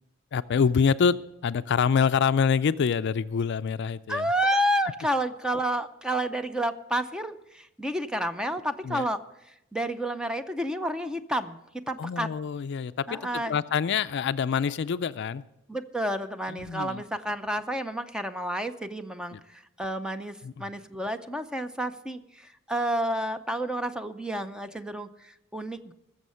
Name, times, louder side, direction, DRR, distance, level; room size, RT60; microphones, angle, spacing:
voice 1, 0.3-4.3 8.8-9.1 12.0-15.4 16.5-17.0 19.3-19.4 20.4-20.7, left 6 dB, 55° left, 14 dB, 0.4 m, -26 dB
voice 2, 4.1-9.2 9.5-11.6 11.9-12.3 13.1-13.6 15.7-25.9, right 1 dB, 5° right, 9 dB, 0.6 m, -30 dB
20.0 x 7.3 x 5.6 m, 0.86 s
head